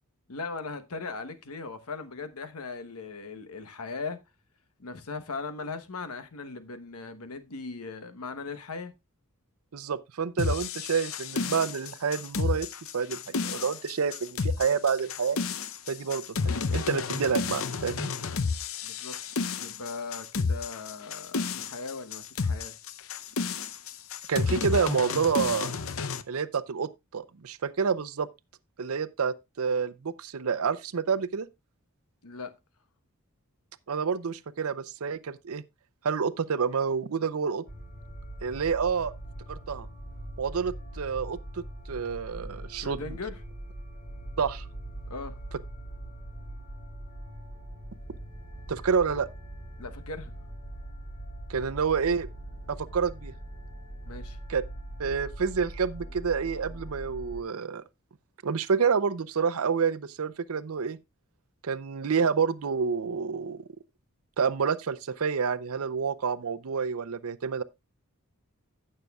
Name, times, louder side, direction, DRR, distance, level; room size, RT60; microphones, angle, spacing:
voice 1, 0.3-4.2 4.8-8.9 18.8-19.2 19.6-22.7 32.2-32.5 42.7-43.4 45.1-45.4 49.8-50.3 54.1-54.4, left 4 dB, 90° left, 1.1 m, -38 dB
voice 2, 9.7-12.7 12.9-15.4 15.9-18.1 24.3-25.7 26.3-28.3 28.8-31.5 33.9-35.6 36.0-37.6 38.4-39.1 39.5-39.9 40.4-41.6 41.9-43.2 44.4-44.6 48.7-49.3 51.5-52.3 52.7-53.3 54.5-54.6 55.0-57.8 58.4-61.0 61.6-63.6 64.4-67.6, right 6 dB, 80° right, 0.6 m, -28 dB
sound 1, 10.4-26.2, left 4 dB, 65° left, 0.7 m, -31 dB
sound 2, 37.7-57.4, right 1 dB, 45° left, 2.9 m, -42 dB
16.0 x 6.7 x 2.3 m
head